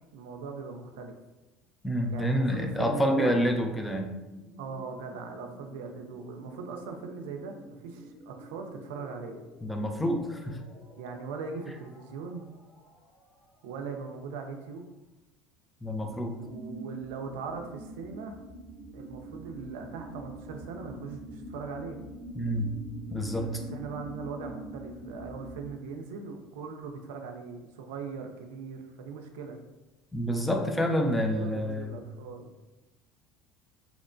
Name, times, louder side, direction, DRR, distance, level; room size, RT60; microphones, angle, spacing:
voice 1, 0.1-1.1 2.1-3.3 4.6-9.4 11.0-12.6 13.6-14.9 16.3-18.4 18.9-22.0 23.5-29.6 30.8-31.1 31.3-32.6, right 5 dB, 85° right, 4 dB, 0.3 m, -40 dB
voice 2, 1.8-4.2 9.6-10.6 15.8-16.4 22.4-22.8 23.1-23.6 30.1-32.0, equal, 10° left, 3 dB, 0.4 m, -28 dB
sound 1, 3.1-14.8, equal, 25° left, 0.8 m, -53 dB
sound 2, 15.9-25.7, right 1 dB, 60° left, 0.7 m, -43 dB
2.7 x 2.1 x 2.5 m, 1.0 s
supercardioid pair, 90°, 0 cm